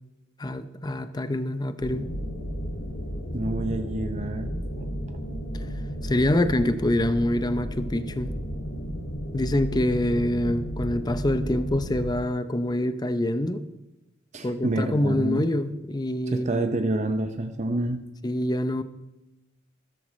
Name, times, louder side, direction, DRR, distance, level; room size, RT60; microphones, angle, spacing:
voice 1, 0.4-2.1 5.5-5.7 6.0-8.3 9.3-13.6 14.4-16.6 18.2-18.8, left 1 dB, 20° left, 12 dB, 0.6 m, -25 dB
sound 1, 1.8-12.1, equal, 90° left, 2.2 m, -33 dB
voice 2, 3.3-4.5 14.3-15.4 16.3-18.0, right 2 dB, 35° right, 7 dB, 0.6 m, -28 dB
15.0 x 13.5 x 3.2 m, 0.99 s
head